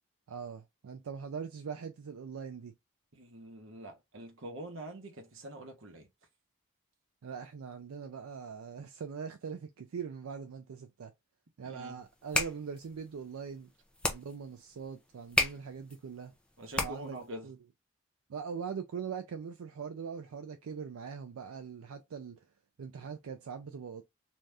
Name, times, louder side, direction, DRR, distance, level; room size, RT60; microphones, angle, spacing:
voice 1, 0.3-2.7 7.2-11.1 11.6-13.7 14.1-16.3 16.8-17.6 18.3-22.4 22.8-24.0, right 6 dB, 80° right, 0.4 m, -42 dB
voice 2, 3.1-6.1 11.6-12.0 16.6-17.5, right 1 dB, 65° right, 0.8 m, -45 dB
sound 1, 12.1-17.3, left 2 dB, 5° left, 0.4 m, -35 dB
2.6 x 2.3 x 3.3 m
head